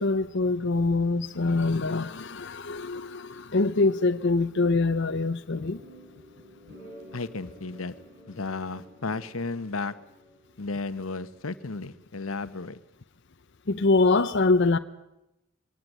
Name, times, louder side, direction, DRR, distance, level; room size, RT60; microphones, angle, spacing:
voice 1, 0.0-5.8 13.7-14.8, left 3 dB, 60° left, 0.8 m, -24 dB
sound 1, 5.6-10.7, equal, 50° right, 5.8 m, -50 dB
voice 2, 7.1-7.9 8.3-9.9 10.6-12.8, left 3 dB, 85° left, 1.1 m, -33 dB
22.5 x 18.0 x 9.2 m
head